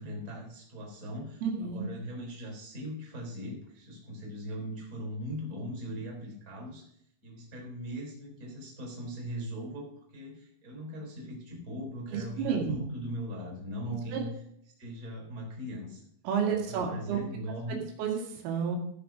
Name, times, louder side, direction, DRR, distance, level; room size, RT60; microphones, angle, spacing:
voice 1, 0.0-6.9 7.2-9.9 10.1-14.3 14.8-16.1 16.5-17.8, equal, 20° right, -1 dB, 3.5 m, -39 dB
voice 2, 1.4-1.9 12.1-12.8 14.1-14.2 16.2-17.2 18.0-18.8, right 7 dB, 80° right, 1 dB, 4.7 m, -30 dB
14.5 x 6.6 x 6.1 m, 0.69 s
omnidirectional pair, 5.8 m